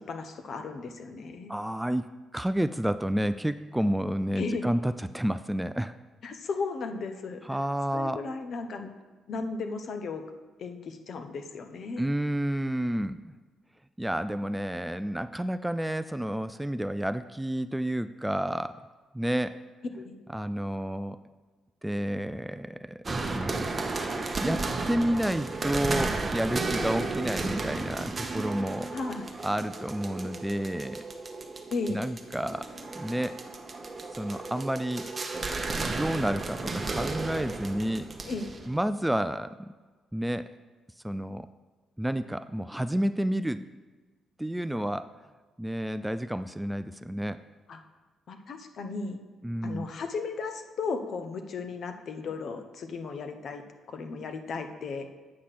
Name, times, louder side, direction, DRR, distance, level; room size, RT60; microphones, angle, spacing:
voice 1, 0.0-1.5 4.4-4.7 6.2-7.6 7.9-8.9 9.3-10.2 10.6-12.1 19.9-20.2 28.9-29.3 31.7-32.0 38.3-38.5 47.7-47.8 48.3-49.2 49.6-53.6 53.9-55.1, left 4 dB, 60° left, 7 dB, 1.0 m, -35 dB
voice 2, 1.5-6.0 7.5-8.2 12.0-13.3 14.0-18.8 19.1-19.6 20.3-21.2 21.8-23.0 23.3-23.6 24.4-28.9 29.4-31.0 31.9-32.7 33.0-33.4 34.2-35.1 35.7-38.1 38.7-39.7 40.1-40.5 41.0-41.5 42.0-43.6 44.4-45.1 45.6-47.4 49.4-49.9, right 1 dB, 5° right, 12 dB, 0.3 m, -30 dB
sound 1, 23.1-38.8, right 3 dB, 30° right, 1.0 m, -34 dB
8.5 x 6.6 x 5.9 m, 1.4 s
cardioid pair, 90°, 0 cm